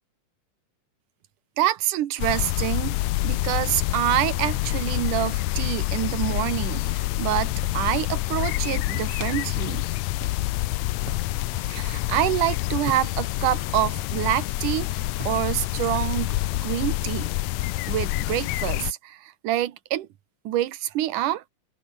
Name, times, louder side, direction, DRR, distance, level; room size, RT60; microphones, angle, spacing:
voice 1, 1.6-3.0 3.2-9.9 11.7-17.3 17.9-20.1 20.4-21.4, right 13 dB, 75° right, 2.8 m, -27 dB
sound 1, 2.2-18.9, left 18 dB, 85° left, 1.6 m, -27 dB
sound 2, 4.7-5.9 6.7-8.0 8.3-9.5 10.2-17.9, right 6 dB, 45° right, 3.8 m, -46 dB
open air
omnidirectional pair, 3.9 m